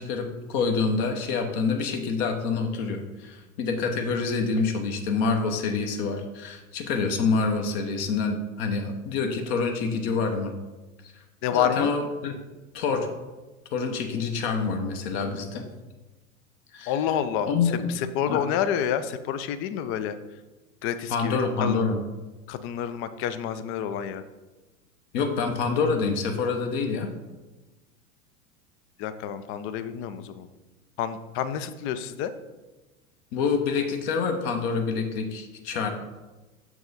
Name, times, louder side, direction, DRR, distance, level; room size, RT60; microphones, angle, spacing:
voice 1, 0.0-10.5 11.5-12.3 12.7-13.1 13.7-15.6 16.7-17.0 17.5-17.9 18.3-18.4 21.1-22.0 25.1-27.1 33.3-35.9, left 4 dB, 45° left, 5 dB, 1.0 m, -27 dB
voice 2, 11.4-11.9 16.9-17.5 18.0-20.2 20.8-21.8 22.5-24.2 29.0-30.5 31.0-32.3, left 9 dB, 30° left, 11 dB, 0.4 m, -28 dB
6.6 x 4.7 x 4.0 m, 1.1 s
hypercardioid pair, 95°, 43 cm